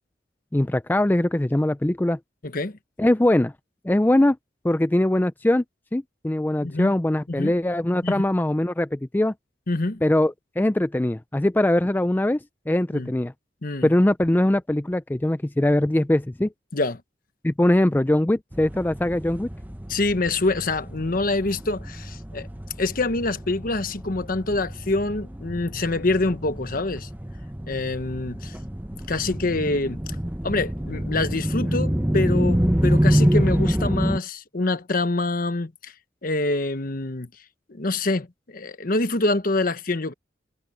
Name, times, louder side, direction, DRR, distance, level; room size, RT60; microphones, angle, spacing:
voice 1, 0.5-2.2 3.0-3.5 3.8-4.4 4.6-5.6 5.9-9.3 10.0-12.4 12.7-13.3 13.8-16.5 17.4-19.5, left 1 dB, 10° left, 0.4 m, -21 dB
voice 2, 6.6-6.9 7.3-7.5 8.0-8.2 9.7-10.0 12.9-13.1 13.6-13.9 16.7-17.0 19.9-22.5 22.8-27.1 27.7-28.5 29.1-30.0 30.4-35.9 36.2-37.3 37.7-40.1, left 2 dB, 50° left, 1.1 m, -26 dB
sound 1, 18.5-34.2, equal, 10° right, 1.0 m, -27 dB
head